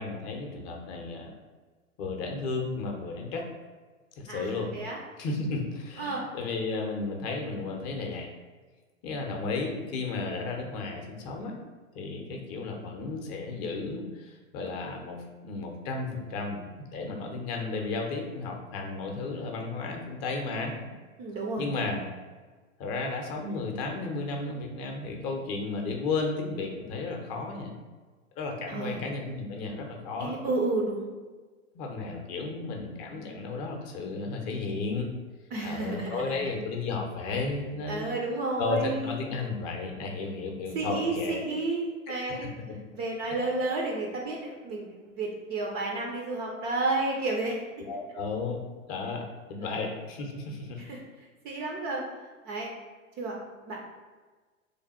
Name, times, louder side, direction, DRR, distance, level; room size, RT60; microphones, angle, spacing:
voice 1, 0.0-1.4 2.0-3.5 4.2-4.7 5.2-8.3 9.0-11.6 11.9-16.7 16.9-20.7 21.6-22.0 22.8-27.7 28.4-30.4 31.7-35.1 35.6-38.2 38.6-41.4 42.1-42.2 43.3-43.4 47.8-48.6 48.9-50.8, left 3 dB, 40° left, 2 dB, 0.7 m, -33 dB
voice 2, 4.3-5.0 6.0-6.2 20.8-20.9 21.2-21.6 28.7-29.0 30.2-31.1 35.5-36.5 37.9-39.3 40.7-42.6 42.9-47.6 49.7-49.9 50.8-51.0 51.4-52.0 52.4-52.7 53.2-53.4 53.6-53.9, right 2 dB, 25° right, -1 dB, 0.4 m, -31 dB
3.3 x 2.2 x 4.1 m, 1.3 s
hypercardioid pair, 100°, 40 cm